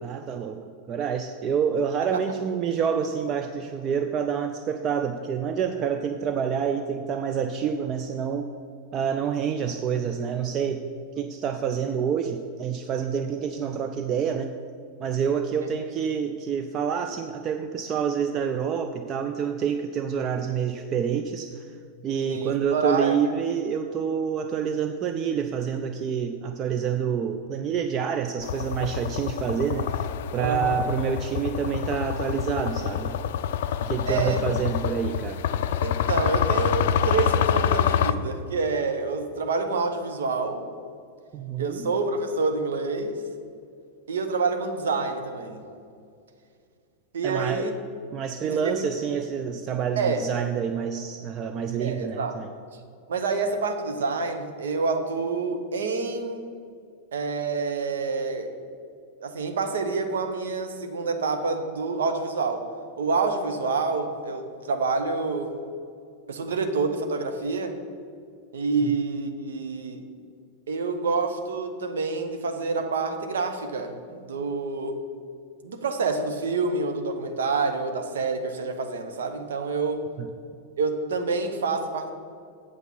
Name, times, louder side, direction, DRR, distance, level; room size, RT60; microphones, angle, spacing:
voice 1, 0.0-8.5 8.9-10.8 11.2-14.5 15.0-21.7 22.0-33.2 33.8-35.4 41.3-41.9 47.2-47.7 48.1-52.5 68.8-69.0 80.2-80.3, right 7 dB, 30° right, 7 dB, 0.4 m, -27 dB
voice 2, 22.3-23.1 30.4-30.8 34.1-34.5 35.8-40.6 41.6-43.2 44.1-45.6 47.1-47.7 48.4-48.9 50.0-50.2 51.8-52.4 53.1-56.5 57.1-58.5 59.2-62.6 62.9-65.5 66.3-67.8 68.5-70.0 70.7-75.0 75.6-80.0 80.8-82.1, right 4 dB, 65° right, 6 dB, 0.9 m, -27 dB
sound 1, 28.4-38.1, left 9 dB, 55° left, 0.3 m, -26 dB
8.2 x 7.8 x 5.6 m, 2.3 s
figure-of-eight pair, 90°, 0 cm